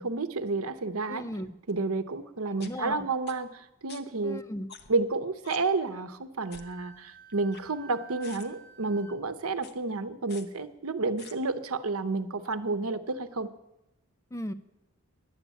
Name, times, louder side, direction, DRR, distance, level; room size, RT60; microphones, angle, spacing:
voice 1, 0.0-1.2 1.7-4.4 4.9-13.5, right 3 dB, 85° right, 11 dB, 0.8 m, -30 dB
voice 2, 1.1-1.5 2.6-3.1 4.2-4.7 14.3-14.5, left 1 dB, 15° left, 11 dB, 0.4 m, -36 dB
sound 1, 1.7-1.8 2.6-2.7 3.3-3.4 3.9-4.0 4.7-5.0 5.4-5.6 6.5-6.7 7.3-7.9 8.2-8.5 9.6-9.7 10.3-10.4 11.2-11.3, left 6 dB, 45° left, 0.9 m, -47 dB
Wind instrument woodwind instrument, 6.4-9.2, right 5 dB, 20° right, 2.0 m, -51 dB
10.5 x 8.2 x 8.3 m, 0.92 s
head